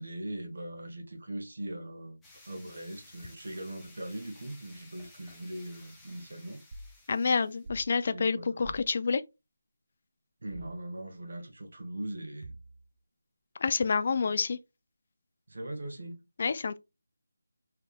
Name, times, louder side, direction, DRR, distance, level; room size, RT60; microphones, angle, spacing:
voice 1, 0.0-6.6 8.1-8.7 10.4-12.6 14.1-14.3 15.5-16.3, right 1 dB, 65° right, 1.4 m, -40 dB
sound 1, 2.2-7.7, left 2 dB, 5° left, 0.6 m, -56 dB
sound 2, 6.7-7.0 7.6-7.9 8.6-8.9 10.5-10.8 12.4-12.9, right 1 dB, 40° right, 0.7 m, -46 dB
voice 2, 7.1-9.2 13.6-14.6 16.4-16.8, left 5 dB, 40° left, 0.3 m, -28 dB
3.6 x 3.4 x 2.4 m
figure-of-eight pair, 170°, 0 cm